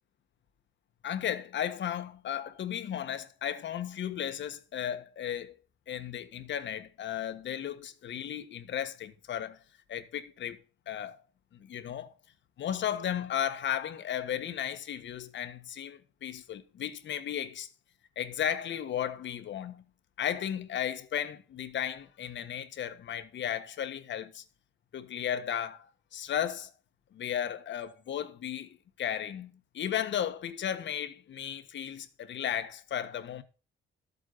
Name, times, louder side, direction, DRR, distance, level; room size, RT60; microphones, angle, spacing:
voice 1, 1.0-5.6 5.9-9.6 9.9-10.6 10.9-11.2 11.5-12.1 12.6-17.7 18.2-19.8 20.2-24.4 24.9-26.7 27.1-33.4, left 9 dB, 60° left, 1.5 m, -35 dB
13.5 x 8.2 x 4.1 m
cardioid pair, 130°, 21 cm